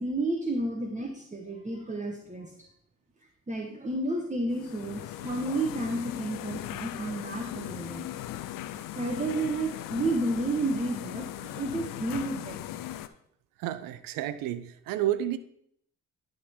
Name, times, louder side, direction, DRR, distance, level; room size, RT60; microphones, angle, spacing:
voice 1, 0.0-2.5 3.5-8.0 8.9-12.6, right 2 dB, 20° right, 1.2 m, -31 dB
sound 1, 4.5-13.1, left 13 dB, 80° left, 0.5 m, -38 dB
voice 2, 13.6-15.4, right 12 dB, 85° right, 0.6 m, -31 dB
11.0 x 3.8 x 4.3 m
supercardioid pair, 55°, 33 cm